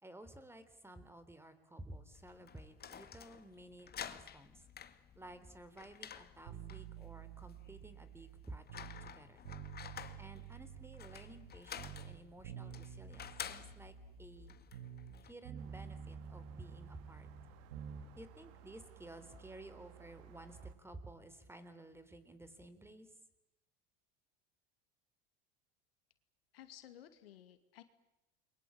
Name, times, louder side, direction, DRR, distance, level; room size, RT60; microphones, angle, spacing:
voice 1, 0.0-4.6 5.2-9.4 10.2-14.6 15.2-17.3 18.2-23.1, right 1 dB, 10° right, 12 dB, 3.7 m, -54 dB
sound 1, 2.1-15.3, left 8 dB, 35° left, 2.0 m, -51 dB
sound 2, 6.5-9.1 9.4-11.5 11.8-15.2 15.4-18.1 18.4-18.5, right 8 dB, 75° right, 5.4 m, -50 dB
sound 3, 15.6-20.8, right 8 dB, 60° right, 2.7 m, -58 dB
voice 2, 26.5-27.8, left 11 dB, 80° left, 10 dB, 2.5 m, -56 dB
29.5 x 23.0 x 8.7 m, 0.91 s
hypercardioid pair, 85°, 29 cm